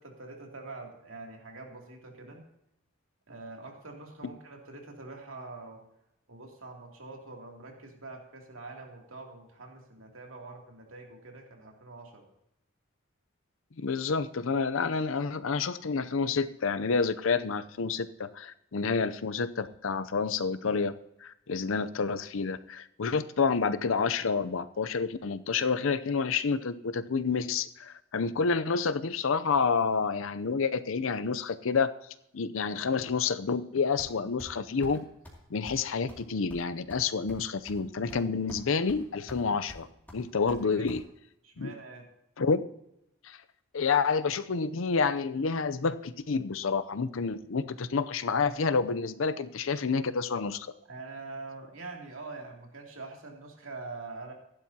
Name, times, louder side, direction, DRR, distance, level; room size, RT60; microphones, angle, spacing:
voice 1, 0.0-2.4 3.3-5.8 6.3-12.3 40.4-40.9 41.4-42.1 50.9-54.3, right 3 dB, 85° right, 0 dB, 2.7 m, -45 dB
voice 2, 13.8-20.9 21.2-31.9 32.3-35.1 35.5-39.9 40.1-41.0 41.6-41.7 42.4-42.7 43.2-43.4 43.7-50.7, left 5 dB, 80° left, 13 dB, 0.6 m, -29 dB
sound 1, 34.0-34.5 34.8-35.0 35.2-35.4 35.7-35.8 36.1-36.2 36.5-37.8 38.1-38.6 38.9-39.4 39.7-41.0, left 1 dB, 10° left, 2.5 m, -47 dB
15.0 x 11.0 x 2.8 m, 0.81 s
head